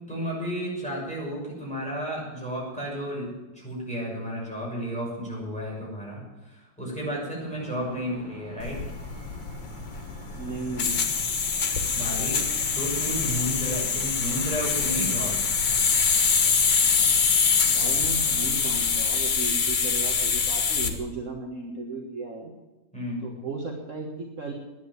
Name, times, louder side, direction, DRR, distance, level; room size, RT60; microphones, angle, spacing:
voice 1, 0.1-3.3 3.5-8.8 11.9-12.4 12.7-15.4 22.9-23.3, equal, 5° left, -5 dB, 6.6 m, -32 dB
sound 1, 7.5-19.0, left 2 dB, 20° right, 6.9 m, -45 dB
sound 2, 8.6-21.0, left 5 dB, 80° left, 2.1 m, -24 dB
voice 2, 10.4-11.1 17.7-22.5 23.2-24.5, right 3 dB, 45° right, -1 dB, 1.8 m, -35 dB
11.0 x 10.5 x 9.5 m, 1.1 s
omnidirectional pair, 1.8 m